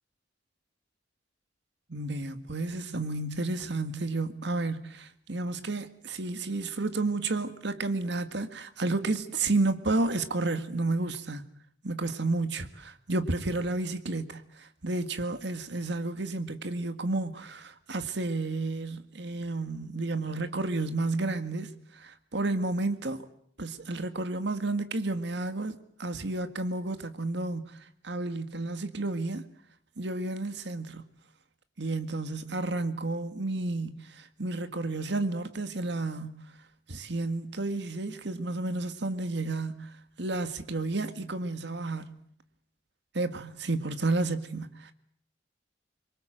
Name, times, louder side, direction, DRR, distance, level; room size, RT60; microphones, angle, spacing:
voice 1, 1.9-11.5 11.8-23.2 23.6-27.8 28.0-29.4 30.0-31.0 31.8-36.4 36.9-42.0 43.1-44.9, right 2 dB, 65° right, 1.9 m, -31 dB
25.5 x 22.5 x 7.8 m
head